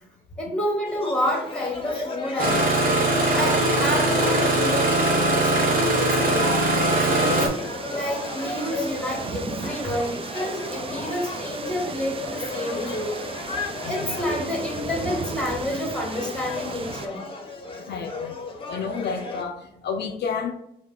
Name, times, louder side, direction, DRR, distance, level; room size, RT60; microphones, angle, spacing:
voice 1, 0.4-2.9 3.3-7.5 7.9-13.2 13.9-17.3, equal, 5° left, 0 dB, 1.3 m, -29 dB
sound 1, 0.8-19.4, left 3 dB, 25° left, 0.8 m, -34 dB
Engine starting, 2.4-7.5, right 2 dB, 45° right, 1.0 m, -21 dB
sound 2, 5.4-17.1, right 4 dB, 30° right, 0.4 m, -36 dB
voice 2, 13.8-14.2 17.9-18.3 18.7-20.5, left 6 dB, 60° left, 4 dB, 0.5 m, -30 dB
4.6 x 2.2 x 3.7 m, 0.75 s
cardioid pair, 90°, 20 cm